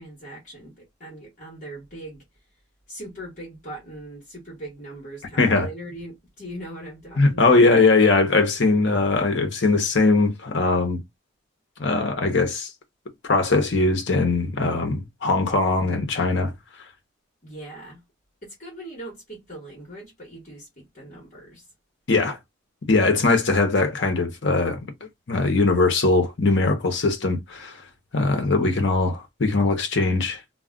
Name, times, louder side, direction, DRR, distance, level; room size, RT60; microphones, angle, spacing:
voice 1, 0.0-2.2 2.9-7.7 17.4-18.0 18.4-21.7, right 1 dB, 40° left, 1.1 m, -40 dB
voice 2, 5.4-5.7 7.2-11.0 11.8-12.7 13.3-16.5 22.1-22.4 22.9-24.8 25.3-27.8 28.1-30.4, left 3 dB, 55° left, 0.7 m, -20 dB
2.3 x 2.1 x 3.5 m
head